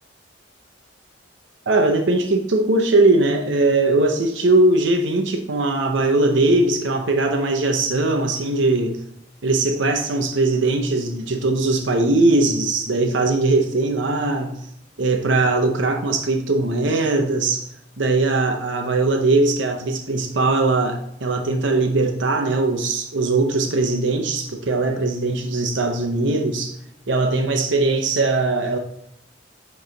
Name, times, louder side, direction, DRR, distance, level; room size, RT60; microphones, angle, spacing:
voice 1, 1.7-9.0 9.4-14.6 15.0-17.7 18.0-26.8 27.1-28.8, right 2 dB, 80° right, 4 dB, 0.7 m, -20 dB
9.5 x 3.2 x 3.8 m, 0.77 s
head